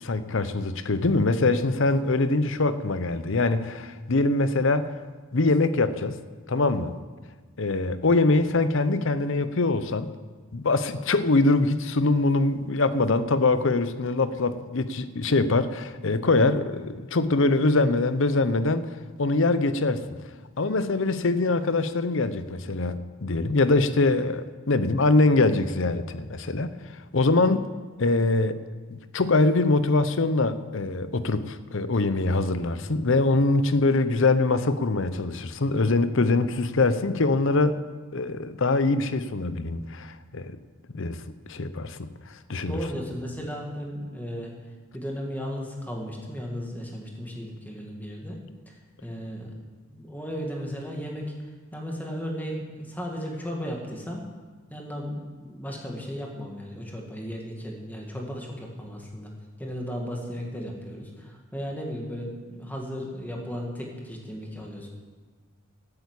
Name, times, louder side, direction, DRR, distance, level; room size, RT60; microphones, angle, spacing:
voice 1, 0.0-4.9 5.3-6.2 6.5-7.0 7.6-10.1 10.5-18.9 19.2-20.0 20.6-27.7 28.0-28.6 28.9-37.7 38.1-40.6 40.9-42.1 42.5-42.8, left 3 dB, 60° left, 12 dB, 0.8 m, -23 dB
voice 2, 42.7-44.5 44.9-48.8 49.0-49.5 49.9-51.3 51.7-54.3 54.7-59.3 59.6-64.9, equal, 10° left, -1 dB, 2.2 m, -35 dB
13.0 x 8.4 x 8.3 m, 1.4 s
head